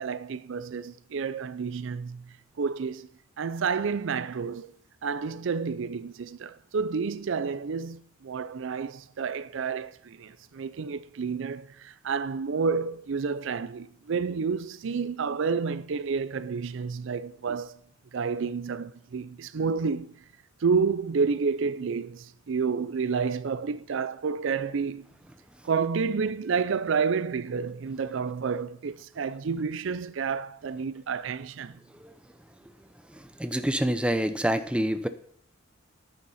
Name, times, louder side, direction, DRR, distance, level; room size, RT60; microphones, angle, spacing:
voice 1, 0.0-3.1 3.4-4.7 5.0-17.8 18.1-20.2 20.6-25.1 25.6-31.8, right 5 dB, 65° right, 0.4 m, -30 dB
voice 2, 32.6-35.1, equal, 5° right, 0.6 m, -28 dB
10.5 x 9.5 x 5.6 m
head